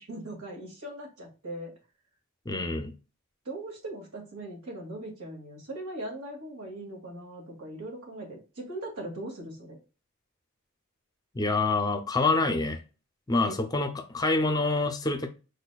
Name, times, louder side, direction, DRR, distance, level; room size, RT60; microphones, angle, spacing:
voice 1, 0.0-1.7 3.5-9.8 13.4-13.6, right 1 dB, 85° right, -1 dB, 2.1 m, -40 dB
voice 2, 2.5-2.9 11.3-12.8 13.3-15.3, left 3 dB, 15° left, 8 dB, 0.5 m, -26 dB
5.0 x 4.1 x 2.2 m, 0.32 s
head